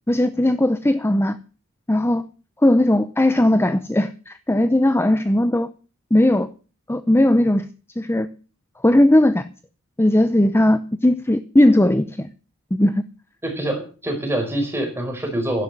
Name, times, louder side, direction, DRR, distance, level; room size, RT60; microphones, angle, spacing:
voice 1, 0.1-1.4 1.9-2.2 2.6-5.7 6.1-6.5 6.9-7.7 8.0-8.3 8.8-9.4 10.0-12.3 12.7-13.0, left 1 dB, 10° left, 12 dB, 0.7 m, -18 dB
voice 2, 13.4-15.6, right 1 dB, 10° right, 3 dB, 4.8 m, -25 dB
12.0 x 11.0 x 7.6 m, 0.37 s
head